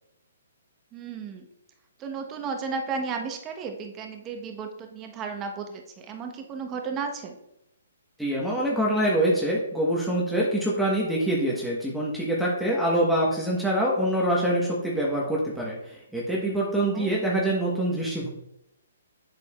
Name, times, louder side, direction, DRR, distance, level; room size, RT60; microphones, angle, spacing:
voice 1, 0.9-1.5 2.0-7.3 16.9-17.1, right 5 dB, 25° right, 4 dB, 1.1 m, -34 dB
voice 2, 8.2-18.3, right 1 dB, ahead, -5 dB, 1.2 m, -25 dB
8.1 x 6.3 x 2.4 m, 0.82 s
hypercardioid pair, 135°, 0 cm